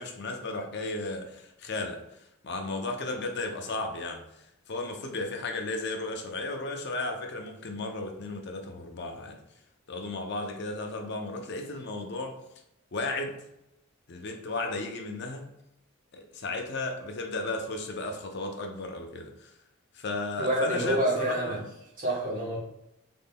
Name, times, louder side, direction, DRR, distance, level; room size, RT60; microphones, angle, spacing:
voice 1, 0.0-2.0 2.4-4.2 4.7-9.4 9.9-12.4 12.9-13.4 14.1-15.5 16.1-19.5 19.9-21.6, left 2 dB, 50° left, 4 dB, 0.5 m, -34 dB
voice 2, 20.4-21.6 22.0-22.6, right 1 dB, 40° right, -5 dB, 1.2 m, -27 dB
3.8 x 3.6 x 2.2 m, 0.84 s
head